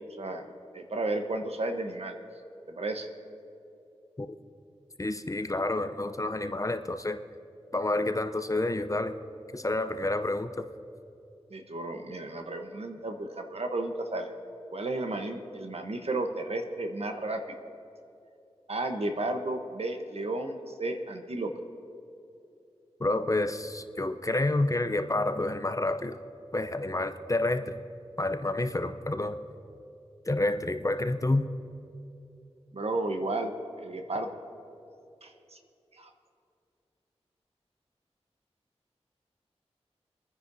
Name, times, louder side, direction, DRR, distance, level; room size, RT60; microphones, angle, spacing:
voice 1, 0.1-0.5 0.7-2.2 2.7-3.1 11.5-14.3 14.7-17.6 18.7-21.5 32.7-34.4 35.2-35.6 35.9-36.1, right 2 dB, 65° right, 6 dB, 1.0 m, -33 dB
voice 2, 5.0-7.2 7.7-9.2 9.5-10.7 23.0-26.2 26.5-27.8 28.2-29.4 30.3-31.5, left 2 dB, 30° left, 9 dB, 0.6 m, -29 dB
25.5 x 9.9 x 2.7 m, 2.7 s
wide cardioid pair, 55°, 11 cm